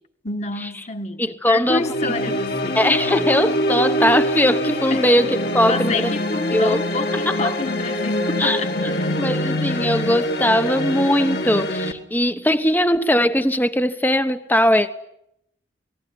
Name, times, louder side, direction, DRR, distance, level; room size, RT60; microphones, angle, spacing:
voice 1, 0.2-2.8 4.9-5.1 5.6-9.2, left 3 dB, 35° left, 1.9 m, -28 dB
voice 2, 1.2-1.9 2.7-6.1 6.5-6.8 7.3-7.5 8.4-8.6 9.2-14.9, equal, 10° left, 1.1 m, -20 dB
sound 1, 1.7-11.9, equal, 55° left, 2.4 m, -24 dB
28.0 x 20.0 x 9.5 m
head